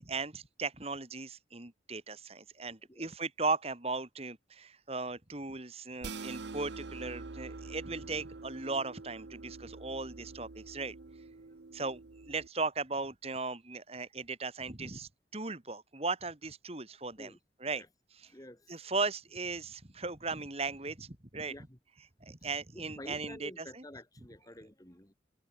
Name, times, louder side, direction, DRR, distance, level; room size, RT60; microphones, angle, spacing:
voice 1, 0.0-10.9 11.7-12.0 12.3-17.3 17.6-17.8 18.7-21.5 22.2-23.6, right 3 dB, 35° right, 2.3 m, -37 dB
sound 1, 6.0-12.5, right 3 dB, 75° right, 0.8 m, -46 dB
voice 2, 18.3-18.9 21.4-21.8 22.4-25.1, left 1 dB, 20° left, 3.1 m, -50 dB
head